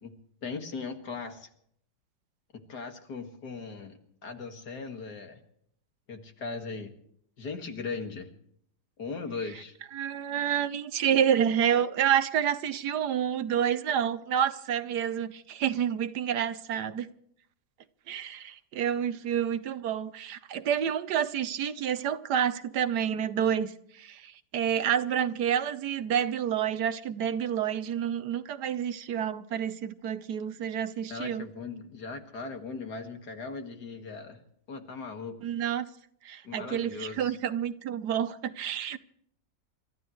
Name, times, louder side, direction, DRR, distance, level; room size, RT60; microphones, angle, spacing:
voice 1, 0.4-1.5 2.7-5.4 6.1-6.9 7.4-8.3 9.0-9.7 31.1-34.4 34.7-35.4 36.4-37.3, left 4 dB, 65° left, 2.5 m, -38 dB
voice 2, 9.9-17.1 18.1-23.7 24.0-31.5 35.4-35.9 36.2-39.0, right 9 dB, 70° right, 1.4 m, -29 dB
29.0 x 14.0 x 3.1 m
omnidirectional pair, 1.9 m